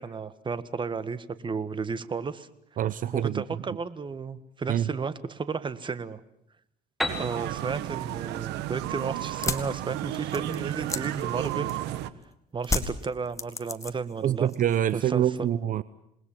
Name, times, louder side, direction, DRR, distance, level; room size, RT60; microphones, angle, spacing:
voice 1, 0.0-2.5 3.1-6.2 7.2-11.8 12.5-14.5 14.9-15.5, right 5 dB, 30° right, 14 dB, 1.7 m, -33 dB
voice 2, 2.8-3.4 4.7-4.9 14.2-15.8, right 10 dB, 55° right, 16 dB, 0.9 m, -25 dB
Piano, 7.0-10.7, left 1 dB, ahead, 4.2 m, -37 dB
sound 1, 7.1-12.1, right 14 dB, 90° right, 1.3 m, -33 dB
sound 2, 9.3-12.0 12.6-14.2 14.5-15.1, left 2 dB, 20° left, 2.4 m, -32 dB
27.5 x 20.5 x 7.5 m, 0.76 s
cardioid pair, 110°, 17 cm